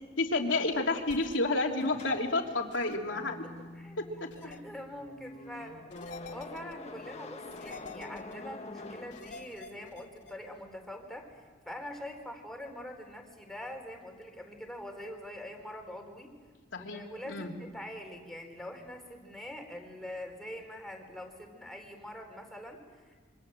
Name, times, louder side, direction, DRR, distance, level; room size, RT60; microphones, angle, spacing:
voice 1, 0.2-3.4 16.7-17.0 17.3-17.5, left 2 dB, 90° left, 2 dB, 3.1 m, -30 dB
sound 1, 1.1-1.4 2.7-3.0 4.3-4.6 5.9-6.7 7.5-8.3 9.1-10.3, left 4 dB, 70° left, 2.6 m, -48 dB
sound 2, 1.8-9.9, left 2 dB, 35° left, 1.4 m, -46 dB
voice 2, 3.3-16.4 16.8-23.2, left 1 dB, ahead, 2 dB, 4.2 m, -44 dB
27.0 x 25.0 x 7.8 m, 1.4 s
head